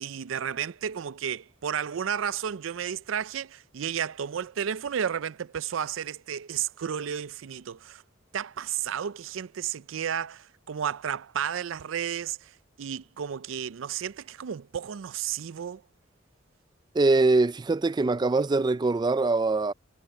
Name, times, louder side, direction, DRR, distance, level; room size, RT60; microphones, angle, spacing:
voice 1, 0.0-8.0 8.3-12.5 12.8-15.8, right 8 dB, 90° right, 0.4 m, -32 dB
voice 2, 16.9-19.7, right 3 dB, 20° right, 0.4 m, -23 dB
head